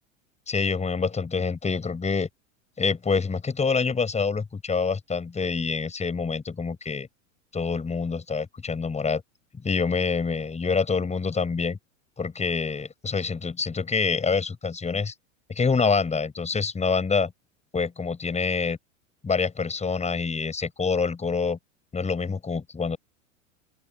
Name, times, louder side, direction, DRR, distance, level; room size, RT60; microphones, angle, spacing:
voice 1, 0.5-2.3 2.8-7.1 7.5-9.2 9.6-11.8 12.2-15.1 15.5-17.3 17.7-18.8 19.2-21.6 21.9-23.0, left 5 dB, 15° left, 8.0 m, -26 dB
open air
hypercardioid pair, 100°, 39 cm